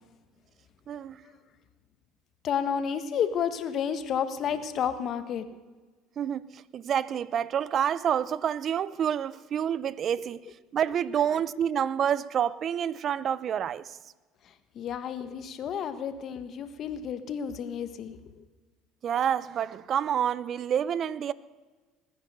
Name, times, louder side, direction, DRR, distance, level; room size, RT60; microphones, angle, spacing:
voice 1, 0.9-1.2 6.2-10.4 10.7-14.0 19.0-21.3, right 9 dB, 50° right, 0.6 m, -28 dB
voice 2, 2.4-5.6 14.4-18.4, left 8 dB, 50° left, 1.4 m, -31 dB
20.0 x 9.6 x 6.8 m
supercardioid pair, 85°, 0 cm